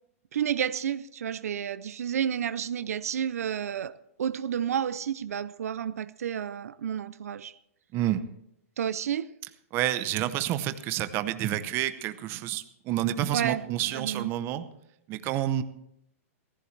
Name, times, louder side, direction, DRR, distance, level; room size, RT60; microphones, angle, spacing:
voice 1, 0.3-3.9 4.2-7.5 8.8-9.3 13.3-13.7 13.9-14.3, right 9 dB, 80° right, 0.5 m, -30 dB
voice 2, 7.9-8.2 9.7-14.7 15.1-15.6, right 12 dB, 30° right, 0.8 m, -29 dB
16.5 x 15.0 x 3.3 m
hypercardioid pair, 145°, 8 cm